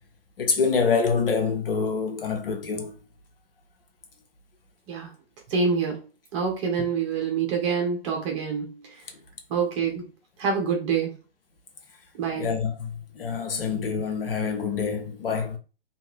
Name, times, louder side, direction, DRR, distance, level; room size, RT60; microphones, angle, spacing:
voice 1, 0.4-2.9 12.4-15.6, left 5 dB, 65° left, 0.8 m, -26 dB
voice 2, 5.5-6.0 6.3-8.9 9.5-10.0 10.4-11.1 12.1-12.5, right 5 dB, 30° right, 1.0 m, -26 dB
2.7 x 2.6 x 3.0 m
figure-of-eight pair, 125°, 30 cm